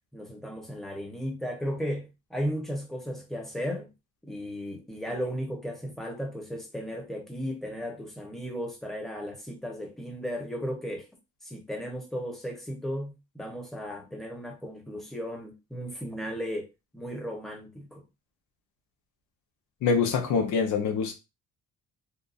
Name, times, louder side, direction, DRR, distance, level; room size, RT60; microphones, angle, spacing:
voice 1, 0.1-3.9 4.2-11.0 11.4-16.7 16.9-18.0, equal, ahead, 0.9 m, -35 dB
voice 2, 19.8-21.1, left 5 dB, 80° left, 0.8 m, -25 dB
2.8 x 2.3 x 2.5 m
cardioid pair, 90°, 30 cm